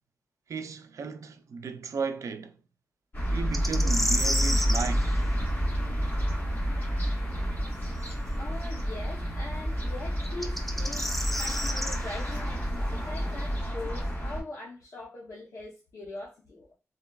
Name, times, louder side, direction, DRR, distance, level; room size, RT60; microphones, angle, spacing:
voice 1, 0.5-2.6 3.3-5.2, right 5 dB, 85° right, 0.4 m, -35 dB
sound 1, 3.1-14.4, equal, 45° left, 1.4 m, -29 dB
sound 2, 3.5-4.9 8.0-8.1 10.3-12.0, equal, 5° left, 0.4 m, -30 dB
voice 2, 8.4-16.7, left 2 dB, 80° left, 0.7 m, -42 dB
3.9 x 2.3 x 2.2 m
wide cardioid pair, 115°, 5 cm